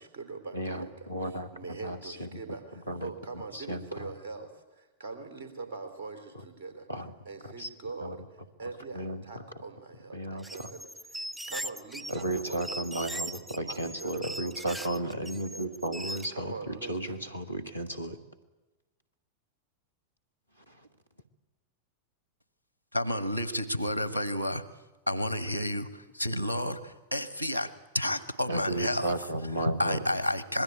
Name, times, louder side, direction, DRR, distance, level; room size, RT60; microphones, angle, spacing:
voice 1, 0.0-13.1 13.5-15.7 16.0-17.2, right 4 dB, 55° right, 8 dB, 3.7 m, -43 dB
voice 2, 0.5-1.5 1.8-2.4 2.9-3.1 3.5-4.1 6.9-7.1 7.4-7.7 8.0-8.1 8.9-9.2 10.1-10.7 12.1-18.2 28.5-30.0, right 1 dB, 90° left, 6 dB, 1.8 m, -34 dB
sound 1, 10.4-16.3, right 1 dB, 5° right, 0.8 m, -40 dB
voice 3, 22.9-24.6 25.1-29.2 29.6-30.6, left 1 dB, 85° right, 13 dB, 1.4 m, -30 dB
26.0 x 21.0 x 8.7 m, 1.1 s
figure-of-eight pair, 90°, 0 cm